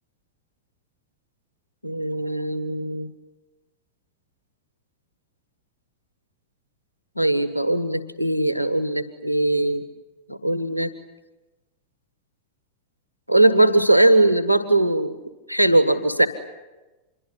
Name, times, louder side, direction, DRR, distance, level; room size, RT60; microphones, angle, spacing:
voice 1, 1.8-3.1 7.2-9.8 10.3-10.9 13.3-15.1 15.5-16.3, right 2 dB, 90° left, 12 dB, 1.4 m, -20 dB
26.5 x 23.0 x 9.5 m, 1.1 s
figure-of-eight pair, 90°, 0 cm